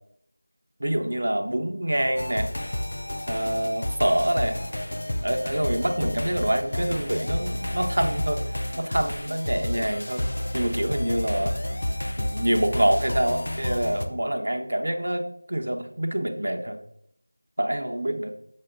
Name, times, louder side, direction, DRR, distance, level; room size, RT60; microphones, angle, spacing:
voice 1, 0.8-2.5 3.3-4.6 5.2-8.4 8.8-10.3 10.5-11.6 12.2-16.8 17.6-18.3, right 1 dB, 65° right, 6 dB, 0.9 m, -26 dB
sound 1, 2.2-14.1, left 1 dB, 55° left, 0.6 m, -30 dB
7.6 x 5.7 x 3.7 m, 0.72 s
figure-of-eight pair, 180°, 0 cm